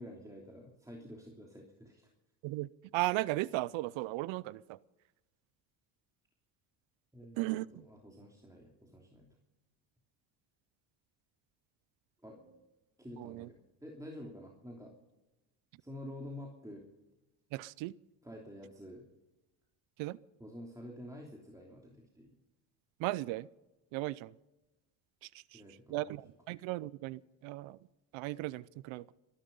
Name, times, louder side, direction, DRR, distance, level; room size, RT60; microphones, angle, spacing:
voice 1, 0.0-2.0 7.1-7.5 7.7-9.3 12.2-12.6 13.0-14.9 15.8-16.8 18.2-19.0 20.4-22.3 25.5-26.1, left 1 dB, 5° right, 3.1 m, -49 dB
voice 2, 2.4-4.8 7.4-7.7 13.2-13.5 17.5-17.9 20.0-20.2 23.0-23.5 23.9-24.3 25.5-25.6 25.9-27.8 28.1-29.0, right 18 dB, 80° right, 0.6 m, -36 dB
22.5 x 11.5 x 5.5 m
supercardioid pair, 80°, 46 cm